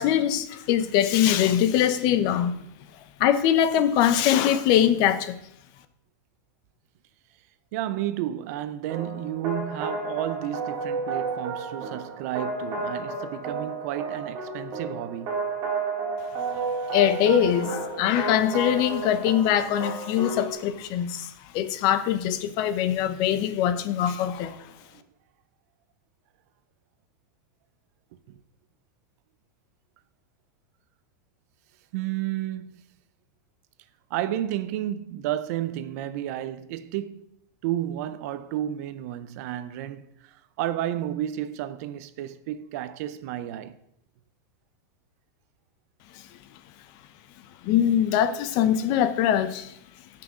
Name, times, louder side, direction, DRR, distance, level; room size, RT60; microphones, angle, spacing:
voice 1, 0.0-2.6 3.2-5.4 16.9-24.6 47.6-49.8, left 10 dB, 45° left, 0.8 m, -22 dB
voice 2, 7.7-15.4 24.8-25.0 28.3-28.4 31.9-32.7 34.1-37.3 37.6-43.8, right 12 dB, 55° right, 0.7 m, -32 dB
sound 1, 8.9-20.5, right 3 dB, 40° right, 3.4 m, -32 dB
16.0 x 5.8 x 3.8 m
supercardioid pair, 150°, 10 cm